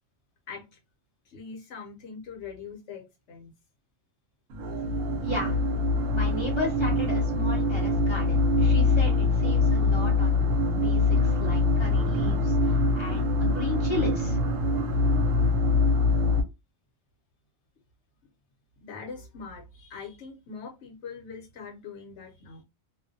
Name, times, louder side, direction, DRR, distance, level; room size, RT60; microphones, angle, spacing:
voice 1, 0.5-0.8 1.3-3.5 18.8-22.6, left 5 dB, 65° left, 3 dB, 0.9 m, -42 dB
sound 1, 4.5-16.4, left 2 dB, 85° right, 1.0 m, -24 dB
voice 2, 5.2-5.5 6.1-14.4, left 1 dB, 25° left, -1 dB, 0.7 m, -35 dB
2.4 x 2.1 x 2.5 m, 0.25 s
omnidirectional pair, 1.3 m